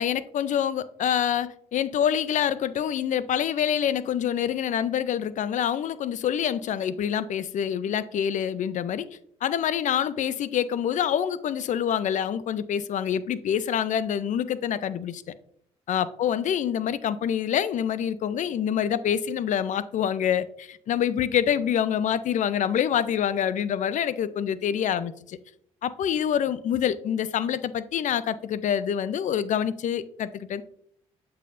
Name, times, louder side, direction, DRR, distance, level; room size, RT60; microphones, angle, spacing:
voice 1, 0.0-9.1 9.4-15.2 15.9-25.4 25.8-30.6, left 9 dB, 60° left, 16 dB, 0.5 m, -26 dB
8.2 x 5.5 x 2.6 m, 0.67 s
supercardioid pair, 55°, 14 cm